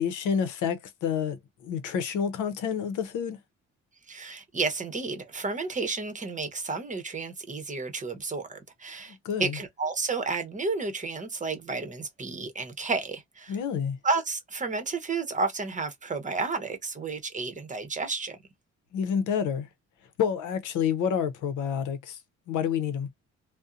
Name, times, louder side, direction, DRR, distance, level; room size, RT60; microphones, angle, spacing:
voice 1, 0.0-3.4 9.1-9.6 13.5-14.0 18.9-19.7 20.2-22.2 22.5-23.1, left 7 dB, 80° left, 0.7 m, -29 dB
voice 2, 4.1-13.6 14.0-18.4, right 4 dB, 25° right, 0.8 m, -31 dB
2.6 x 2.1 x 2.4 m
cardioid pair, 90°, 30 cm